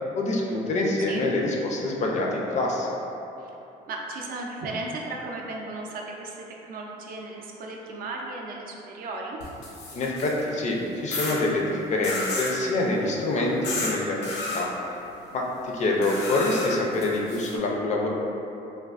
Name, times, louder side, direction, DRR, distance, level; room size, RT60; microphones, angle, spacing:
voice 1, 0.1-2.9 9.9-13.6 13.8-14.7 15.3-18.1, left 2 dB, 45° left, -1 dB, 0.4 m, -26 dB
voice 2, 3.9-6.4 6.6-9.4 13.3-13.5 17.4-17.6, right 2 dB, 60° right, -1 dB, 0.4 m, -35 dB
sound 1, 9.4-10.5 11.1-11.4 12.0-12.6 13.6-13.9 14.2-14.6 16.0-17.5, left 2 dB, 90° left, 0.6 m, -32 dB
3.3 x 2.3 x 2.4 m, 2.9 s
cardioid pair, 110°, 17 cm